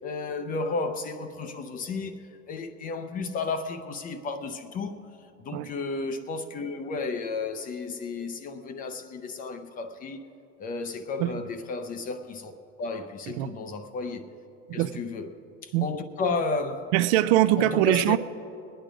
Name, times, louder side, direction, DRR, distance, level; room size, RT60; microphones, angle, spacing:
voice 1, 0.0-5.1 5.4-10.3 10.6-12.5 12.8-14.3 14.7-16.9 17.6-18.2, left 3 dB, 20° left, 0.5 m, -33 dB
voice 2, 16.9-18.2, right 14 dB, 55° right, 0.5 m, -22 dB
21.5 x 9.3 x 5.0 m
supercardioid pair, 150°, 38 cm